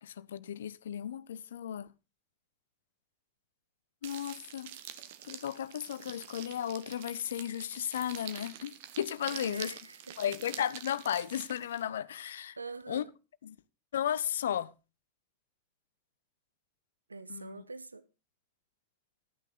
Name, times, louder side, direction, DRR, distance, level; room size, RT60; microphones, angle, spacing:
voice 1, 0.0-1.9 4.0-4.7 5.3-9.7 10.2-12.6 12.9-13.0 13.4-13.6 13.9-14.7 17.3-17.6, left 10 dB, 60° left, 0.6 m, -35 dB
sound 1, 4.0-11.8, right 10 dB, 50° right, 1.2 m, -47 dB
voice 2, 9.3-10.2 12.6-13.1 17.1-18.0, right 4 dB, 80° right, 0.8 m, -44 dB
13.5 x 9.0 x 3.9 m
figure-of-eight pair, 90°, 0 cm